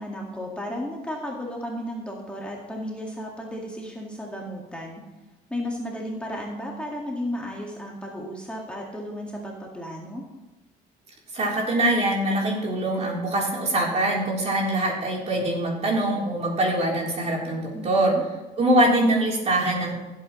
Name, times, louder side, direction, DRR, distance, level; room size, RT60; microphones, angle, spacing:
voice 1, 0.0-5.0 5.5-10.2 17.7-18.2, equal, 5° left, -2 dB, 2.0 m, -34 dB
voice 2, 11.3-18.1 18.6-19.9, right 1 dB, 40° right, -2 dB, 3.7 m, -23 dB
15.5 x 8.3 x 3.2 m, 1.1 s
cardioid pair, 110°, 17 cm